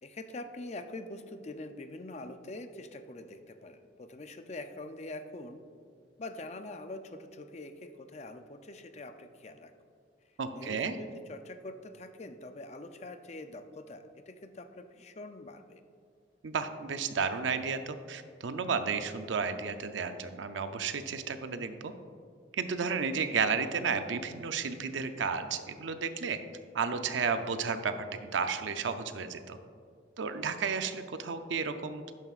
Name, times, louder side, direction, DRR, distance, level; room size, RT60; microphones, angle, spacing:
voice 1, 0.0-5.7 6.2-9.7 10.5-15.8, left 2 dB, 35° left, 8 dB, 0.5 m, -44 dB
voice 2, 10.4-11.0 16.4-21.9 22.5-26.4 26.7-27.9 28.2-29.6 30.2-32.0, right 5 dB, 80° right, 9 dB, 0.5 m, -32 dB
11.5 x 9.0 x 2.5 m, 2.2 s
head